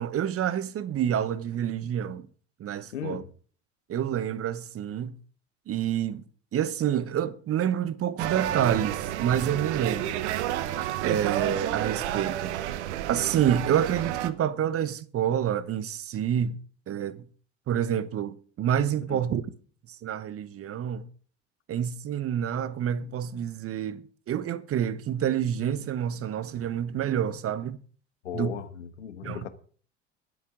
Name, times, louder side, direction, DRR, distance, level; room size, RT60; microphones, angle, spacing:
voice 1, 0.0-2.3 2.6-3.2 3.9-5.2 5.7-6.2 6.5-10.2 11.0-12.5 13.1-16.6 16.9-17.2 17.7-19.4 19.9-21.1 21.7-27.8 28.3-28.5 29.2-29.4, right 9 dB, 40° right, 1.2 m, -28 dB
voice 2, 2.9-3.3 19.1-19.3 28.2-29.5, left 9 dB, 85° left, 1.3 m, -36 dB
sound 1, 8.2-14.3, right 12 dB, 70° right, 1.1 m, -30 dB
21.5 x 8.5 x 3.8 m
hypercardioid pair, 70°, 35 cm